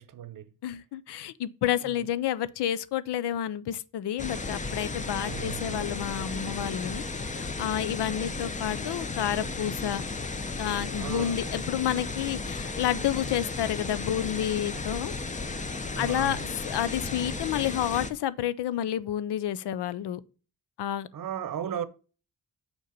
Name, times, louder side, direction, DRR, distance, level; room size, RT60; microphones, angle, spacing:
voice 1, 0.0-0.5 1.8-2.1 5.2-6.0 10.9-11.4 15.9-16.6 21.1-21.9, right 9 dB, 55° right, 0.8 m, -37 dB
voice 2, 0.6-7.0 7.4-10.0 10.6-15.1 16.0-16.4 16.6-20.2 20.8-21.1, left 11 dB, 85° left, 0.6 m, -30 dB
sound 1, 4.2-18.1, left 3 dB, 20° left, 0.6 m, -34 dB
6.6 x 4.5 x 5.1 m
cardioid pair, 115°, 39 cm